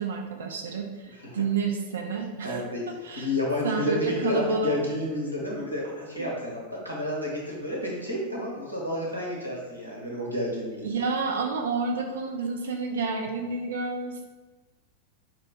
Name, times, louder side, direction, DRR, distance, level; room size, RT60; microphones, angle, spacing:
voice 1, 0.0-3.3 3.6-4.8 6.2-6.3 10.8-14.3, right 4 dB, 65° right, 2 dB, 0.3 m, -29 dB
voice 2, 2.4-2.8 3.1-11.0, left 1 dB, 85° right, -3 dB, 0.8 m, -31 dB
4.2 x 2.1 x 2.8 m, 1.2 s
figure-of-eight pair, 90°, 0 cm